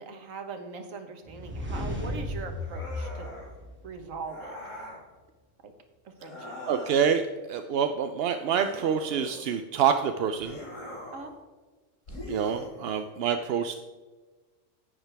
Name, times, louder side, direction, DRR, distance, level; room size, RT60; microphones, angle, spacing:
voice 1, 0.0-3.3 3.8-4.6 5.6-5.7 6.0-6.6 11.1-11.3, right 4 dB, 80° right, 6 dB, 1.6 m, -40 dB
sound 1, 1.2-4.2, left 1 dB, 10° right, 2.0 m, -35 dB
sound 2, 2.6-3.5 4.3-5.0 6.2-7.2 8.5-9.6 10.4-11.3 12.1-13.1, left 1 dB, 70° left, 3.5 m, -42 dB
voice 2, 6.6-10.6 12.3-13.7, right 7 dB, 60° right, 8 dB, 0.7 m, -27 dB
10.5 x 8.8 x 3.4 m, 1.3 s
omnidirectional pair, 1.3 m